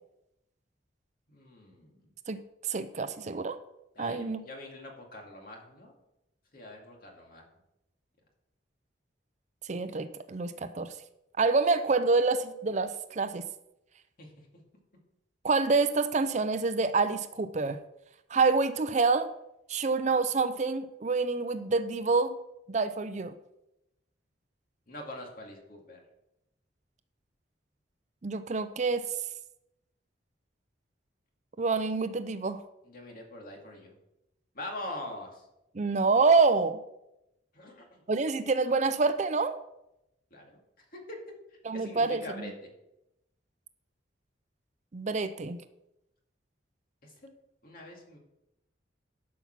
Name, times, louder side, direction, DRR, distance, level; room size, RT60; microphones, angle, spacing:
voice 1, 1.3-2.0 4.0-5.9 6.5-7.4 14.2-14.3 24.9-26.0 32.8-33.9 34.5-35.5 37.5-38.0 40.3-40.6 40.9-41.2 41.7-42.7 47.0-47.3 47.6-48.2, left 1 dB, 50° left, 1 dB, 2.3 m, -43 dB
voice 2, 2.7-3.6 4.0-4.4 9.7-10.9 11.4-13.4 15.4-17.8 18.3-19.3 19.7-22.4 22.7-23.3 28.2-29.0 31.6-32.6 35.7-36.8 38.1-39.6 41.6-42.5 44.9-45.6, right 4 dB, 40° right, 11 dB, 0.5 m, -27 dB
11.0 x 5.7 x 6.0 m, 0.87 s
head